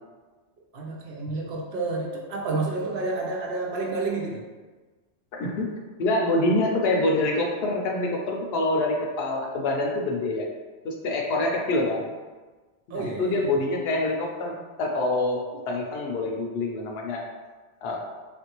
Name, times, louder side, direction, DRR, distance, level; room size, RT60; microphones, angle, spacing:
voice 1, 0.7-4.4 12.9-13.5, right 3 dB, 70° right, -1 dB, 0.8 m, -30 dB
voice 2, 5.3-5.7 6.0-10.4 10.8-12.1 12.9-15.4 15.7-17.2 17.8-18.0, left 2 dB, 65° left, 0 dB, 0.8 m, -26 dB
3.4 x 2.5 x 2.9 m, 1.3 s
omnidirectional pair, 1.2 m